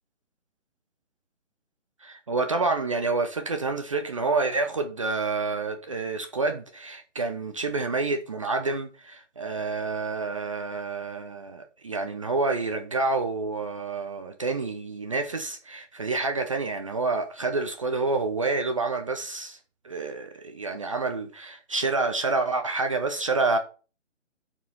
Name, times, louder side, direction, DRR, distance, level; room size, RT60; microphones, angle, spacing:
voice 1, 2.0-19.6 19.8-23.6, right 3 dB, 25° right, 0.6 m, -28 dB
7.1 x 4.4 x 5.4 m
figure-of-eight pair, 155°, 37 cm